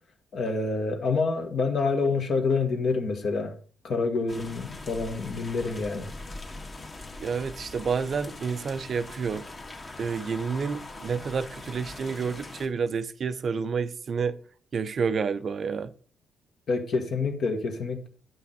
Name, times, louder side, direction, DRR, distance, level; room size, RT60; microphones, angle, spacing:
voice 1, 0.3-3.5 3.8-6.1 16.7-18.1, left 4 dB, 50° left, 1.5 m, -27 dB
sound 1, 4.3-12.7, left 2 dB, 30° left, 1.7 m, -42 dB
voice 2, 7.2-9.4 10.0-14.4 14.7-15.9, right 5 dB, 45° right, 0.5 m, -29 dB
9.4 x 5.7 x 5.4 m
figure-of-eight pair, 40°, 0 cm